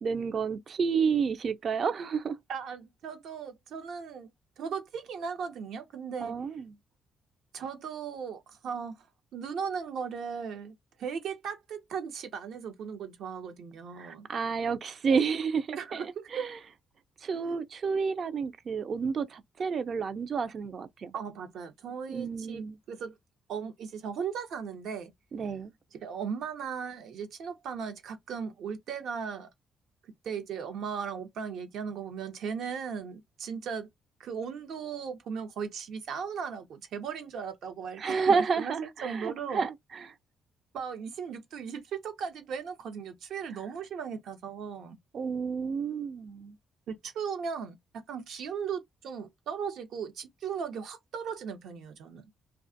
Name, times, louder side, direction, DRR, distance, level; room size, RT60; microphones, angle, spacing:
voice 1, 0.0-2.4 6.2-6.7 14.0-16.6 17.2-21.1 22.1-22.8 25.3-25.7 38.0-40.1 45.1-46.6, right 5 dB, 50° right, 0.4 m, -30 dB
voice 2, 2.5-4.3 4.6-6.4 7.5-9.1 9.3-14.3 15.8-16.4 21.1-23.1 23.5-25.1 26.0-29.5 30.2-33.9 34.2-38.7 39.0-39.7 40.7-45.0 46.9-52.3, right 6 dB, 75° right, 0.8 m, -37 dB
2.4 x 2.3 x 2.6 m
cardioid pair, 90°, 0 cm